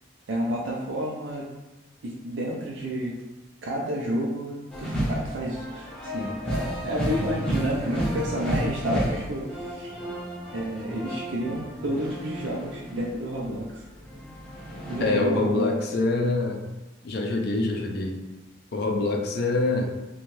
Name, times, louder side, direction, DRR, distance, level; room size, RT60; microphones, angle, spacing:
voice 1, 0.3-1.5 2.0-3.2 3.6-10.0 10.5-13.9 14.9-15.7, right 1 dB, 85° right, -3 dB, 0.4 m, -30 dB
sound 1, 4.7-13.5 13.8-15.1, equal, 5° left, 0.5 m, -32 dB
voice 2, 15.0-16.6 17.0-18.2 18.7-19.9, left 2 dB, 60° left, 2 dB, 0.4 m, -25 dB
2.6 x 2.2 x 3.1 m, 1.1 s
head